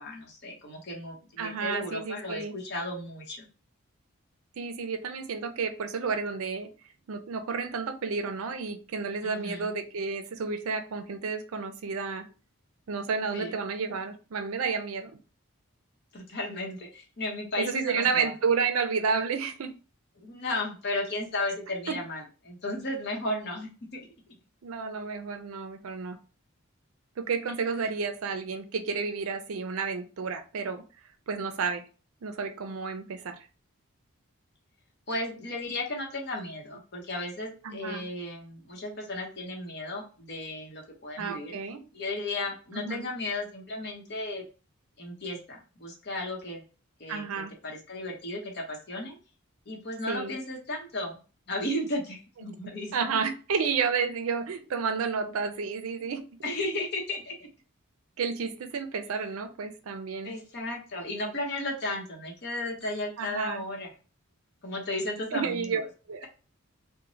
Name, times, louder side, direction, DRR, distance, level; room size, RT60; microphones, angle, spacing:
voice 1, 0.0-3.5 9.2-9.7 13.2-13.6 16.1-18.3 20.2-24.1 27.8-27.9 35.1-41.6 41.9-44.5 45.0-46.6 47.0-49.2 49.7-51.2 51.5-53.1 56.4-57.5 60.2-63.9 64.6-65.8, left 2 dB, 50° left, 0 dB, 0.8 m, -34 dB
voice 2, 1.4-2.5 4.6-6.7 7.1-12.2 12.9-15.2 17.6-19.7 21.9-22.0 24.6-26.2 27.2-30.8 31.3-31.8 32.2-33.4 37.6-38.1 41.2-41.8 42.7-43.0 47.1-47.5 50.1-50.3 52.9-56.2 58.2-60.3 63.2-63.6 65.3-65.8 66.1-66.3, right 5 dB, 75° right, 9 dB, 0.4 m, -31 dB
3.0 x 2.1 x 2.6 m, 0.35 s
head